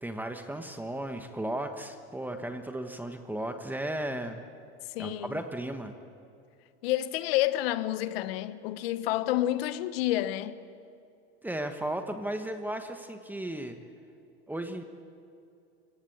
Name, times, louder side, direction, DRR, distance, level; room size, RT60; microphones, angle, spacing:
voice 1, 0.0-4.4 5.0-5.9 11.4-13.8 14.5-14.8, right 1 dB, 5° right, 1.3 m, -35 dB
voice 2, 4.9-5.4 6.8-10.6, left 14 dB, 70° left, 1.2 m, -29 dB
24.0 x 17.0 x 8.7 m
supercardioid pair, 120°, 31 cm